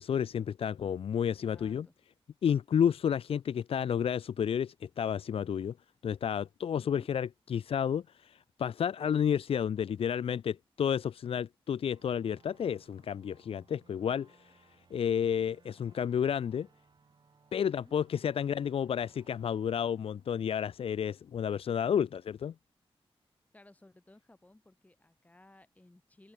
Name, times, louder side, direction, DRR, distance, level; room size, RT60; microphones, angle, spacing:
voice 1, 0.0-1.9 2.4-5.7 6.0-14.6 14.9-16.7 17.5-22.5, left 8 dB, 75° left, 0.4 m, -31 dB
voice 2, 1.2-1.9 6.7-7.1 17.6-17.9 23.5-26.3, left 2 dB, 15° left, 4.6 m, -59 dB
sound 1, 11.8-21.2, right 5 dB, 50° right, 4.5 m, -65 dB
wide cardioid pair, 155°, 10 cm